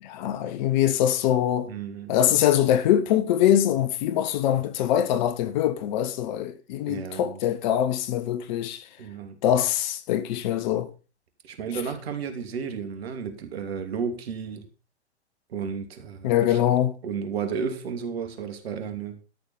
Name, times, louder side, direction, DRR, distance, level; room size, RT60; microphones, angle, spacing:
voice 1, 0.0-1.7 2.1-8.9 9.4-10.9 16.2-16.9, left 11 dB, 40° left, 1.4 m, -23 dB
voice 2, 1.7-2.1 6.9-7.4 9.0-9.4 11.4-14.7 15.5-16.6 17.0-19.2, right 6 dB, 60° right, 2.8 m, -33 dB
13.0 x 6.8 x 5.6 m
figure-of-eight pair, 115°, 34 cm